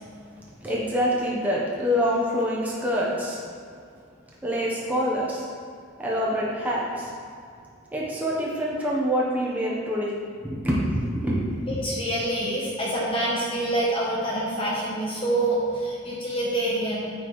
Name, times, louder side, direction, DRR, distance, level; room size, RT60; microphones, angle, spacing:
voice 1, 0.6-3.4 4.4-5.5 6.0-7.1 7.9-11.4, equal, 10° right, -6 dB, 0.9 m, -26 dB
voice 2, 11.7-17.1, right 1 dB, 30° left, -5 dB, 1.0 m, -26 dB
9.6 x 4.4 x 3.2 m, 2.3 s
head